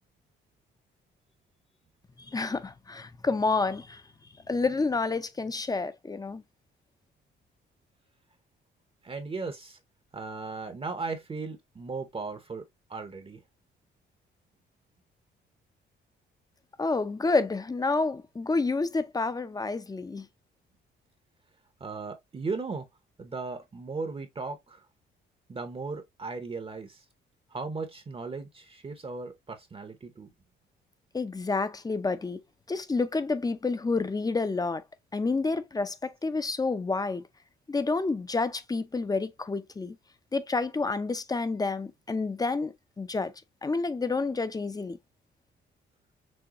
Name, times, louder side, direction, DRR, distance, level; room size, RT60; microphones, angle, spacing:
voice 1, 2.3-4.0 4.5-6.4 16.8-20.3 31.1-32.4 32.7-34.8 35.1-37.2 37.7-39.9 40.3-43.3 43.6-45.0, left 3 dB, 20° left, 0.6 m, -29 dB
voice 2, 9.0-9.8 10.1-12.6 12.9-13.4 21.8-22.9 23.2-24.8 25.5-27.0 27.5-30.3, right 4 dB, 30° right, 0.8 m, -37 dB
6.2 x 2.2 x 2.9 m
cardioid pair, 90°, 20 cm